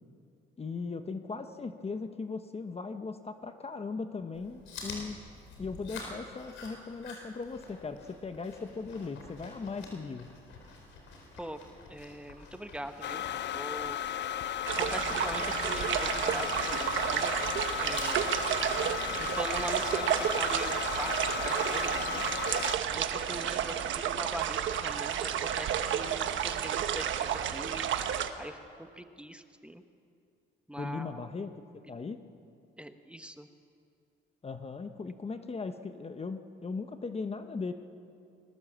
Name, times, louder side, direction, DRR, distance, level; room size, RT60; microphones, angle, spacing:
voice 1, 0.6-5.2 5.6-10.3 18.9-19.1 30.8-31.5 31.9-32.2 34.4-37.7, left 4 dB, 30° left, 8 dB, 1.1 m, -38 dB
Chewing mastication, 4.3-20.2, left 3 dB, 85° left, 4.5 m, -49 dB
voice 2, 11.9-13.2 13.5-14.0 14.8-17.3 17.8-18.3 19.3-22.2 22.9-27.9 28.4-29.8 30.7-31.3 32.8-33.5, equal, 5° right, 7 dB, 1.2 m, -42 dB
sound 1, 13.0-22.8, left 11 dB, 60° left, 0.6 m, -35 dB
sound 2, 14.7-28.3, right 9 dB, 75° right, 1.2 m, -31 dB
21.5 x 19.5 x 7.5 m, 2.4 s
cardioid pair, 90°, 20 cm